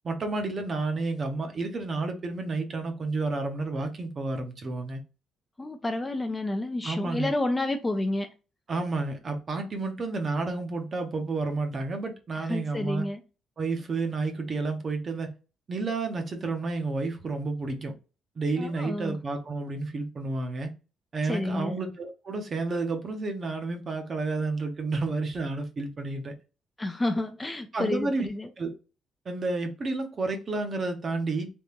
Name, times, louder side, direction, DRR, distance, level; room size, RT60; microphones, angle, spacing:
voice 1, 0.0-5.0 6.8-7.3 8.7-13.1 13.6-15.3 15.7-17.9 18.4-20.7 21.1-26.3 27.7-28.3 28.6-28.7 29.3-31.5, right 3 dB, 35° right, 0.7 m, -30 dB
voice 2, 5.6-8.3 12.4-13.2 18.6-19.2 21.2-21.8 26.8-28.5, left 2 dB, 15° left, 0.3 m, -30 dB
3.5 x 2.8 x 2.8 m
cardioid pair, 145°, 0 cm